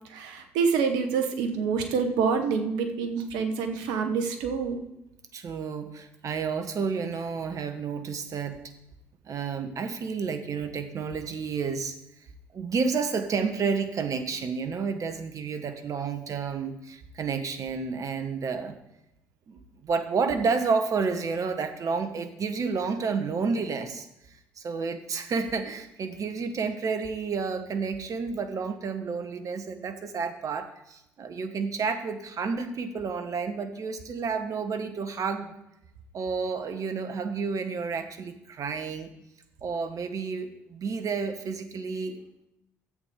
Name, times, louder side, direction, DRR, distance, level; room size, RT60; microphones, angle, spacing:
voice 1, 0.1-4.8, right 5 dB, 75° right, 7 dB, 1.3 m, -27 dB
voice 2, 5.3-8.6 9.3-12.0 12.5-18.7 19.5-24.1 24.6-35.5 36.1-39.1 39.6-42.2, right 5 dB, 50° right, 8 dB, 1.4 m, -30 dB
13.0 x 8.3 x 3.8 m, 0.86 s
hypercardioid pair, 50°, 7 cm